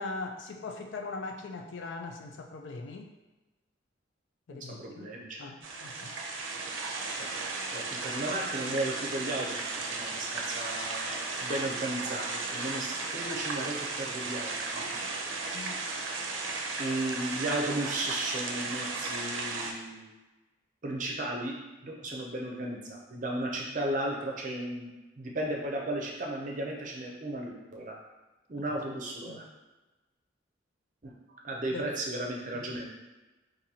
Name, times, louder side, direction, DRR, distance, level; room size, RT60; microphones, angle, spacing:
voice 1, 0.0-3.1 4.5-5.1 5.4-6.2 15.5-15.8 29.3-29.4 31.7-31.9 32.5-32.7, left 3 dB, 70° left, 4 dB, 0.4 m, -40 dB
voice 2, 4.5-5.5 7.1-7.3 7.7-15.0 16.8-20.1 20.8-24.9 25.2-28.0 28.5-29.4 31.0-31.1 31.4-32.9, right 1 dB, 40° right, -1 dB, 0.6 m, -35 dB
sound 1, 5.6-19.7, right 3 dB, 85° right, 0.5 m, -35 dB
3.9 x 2.6 x 2.8 m, 1.1 s
head